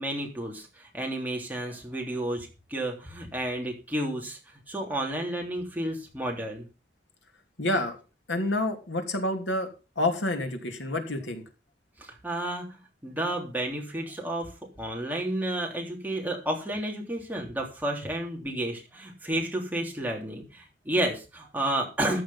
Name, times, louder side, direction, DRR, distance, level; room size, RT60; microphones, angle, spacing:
voice 1, 0.0-4.4 4.7-6.6 12.0-22.2, right 1 dB, 10° right, 0 dB, 3.3 m, -31 dB
voice 2, 7.6-8.0 8.3-9.7 10.0-11.4, left 1 dB, 85° left, 5 dB, 2.9 m, -28 dB
14.0 x 7.0 x 5.7 m, 0.31 s
head